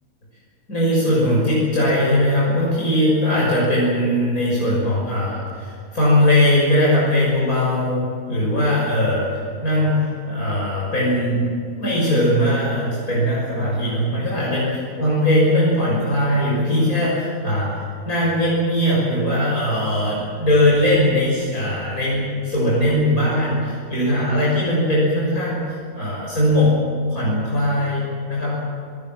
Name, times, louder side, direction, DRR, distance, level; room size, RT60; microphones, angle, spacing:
voice 1, 0.7-11.5 11.8-25.6 26.0-26.7 27.1-28.5, left 1 dB, 90° left, -6 dB, 7.0 m, -20 dB
26.5 x 19.5 x 7.6 m, 2.3 s
omnidirectional pair, 1.5 m